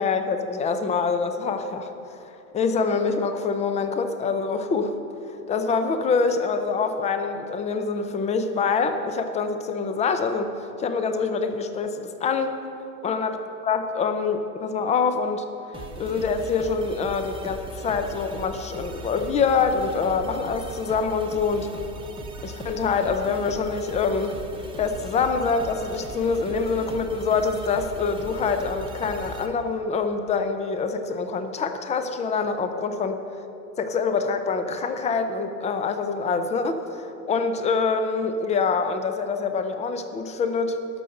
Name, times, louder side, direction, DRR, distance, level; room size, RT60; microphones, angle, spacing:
voice 1, 0.0-5.0 5.5-12.6 13.0-13.4 13.6-21.7 22.4-24.4 24.8-33.2 33.8-40.8, left 5 dB, 15° left, 8 dB, 0.5 m, -25 dB
sound 1, 15.7-29.5, right 2 dB, 10° right, 0.9 m, -39 dB
12.0 x 6.4 x 6.6 m, 2.7 s
hypercardioid pair, 115°, 49 cm